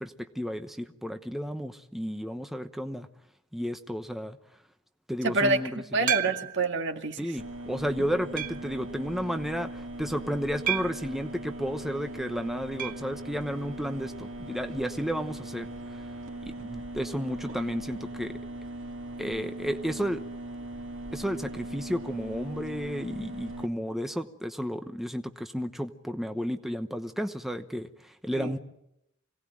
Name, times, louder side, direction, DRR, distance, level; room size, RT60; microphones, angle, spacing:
voice 1, 0.0-3.1 3.5-4.4 5.1-6.1 7.2-16.0 16.5-18.3 19.2-20.2 21.1-28.6, equal, ahead, 7 dB, 1.0 m, -32 dB
voice 2, 5.2-7.2 28.4-28.6, right 3 dB, 65° right, 6 dB, 2.0 m, -27 dB
sound 1, 6.1-6.8 7.4-7.5 8.4-8.8 10.7-11.1 12.8-13.1 13.4-13.5 13.7-13.8 15.8-15.9, right 10 dB, 45° right, 1.0 m, -31 dB
sound 2, 7.4-23.7, right 1 dB, 85° right, 2.5 m, -40 dB
26.0 x 18.0 x 9.0 m, 0.82 s
head